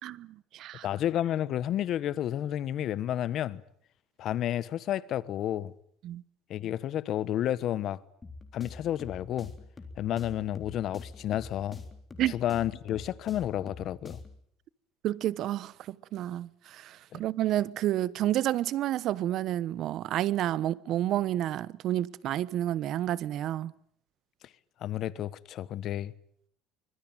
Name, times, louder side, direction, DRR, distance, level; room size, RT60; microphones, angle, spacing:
voice 1, 0.0-0.9 6.0-6.2 12.2-12.3 15.0-23.7, right 13 dB, 55° right, 1.1 m, -30 dB
voice 2, 0.8-3.6 4.2-5.7 6.5-8.0 8.5-9.5 10.0-11.8 12.3-14.2 17.1-17.2 24.8-26.1, left 11 dB, 50° left, 1.2 m, -31 dB
sound 1, 8.2-14.4, left 3 dB, 20° left, 3.8 m, -46 dB
25.0 x 23.0 x 9.0 m
cardioid pair, 140°, 0 cm